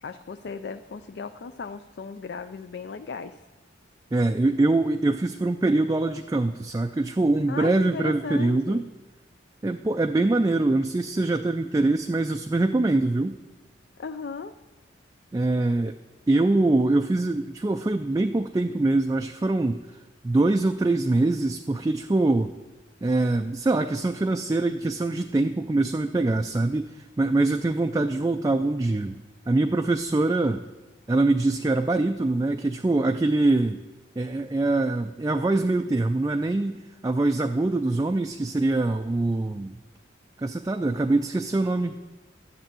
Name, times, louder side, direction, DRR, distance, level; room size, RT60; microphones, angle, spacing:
voice 1, 0.0-3.4 7.5-8.9 14.0-14.5, left 5 dB, 60° left, 10 dB, 0.4 m, -36 dB
voice 2, 4.1-8.8 9.6-13.4 15.3-15.9 16.3-19.8 20.2-22.5 23.0-29.2 29.5-30.6 31.1-33.8 34.2-36.8 37.0-39.7 40.4-41.9, right 2 dB, 20° right, 6 dB, 0.3 m, -23 dB
11.5 x 7.5 x 7.5 m, 1.2 s
head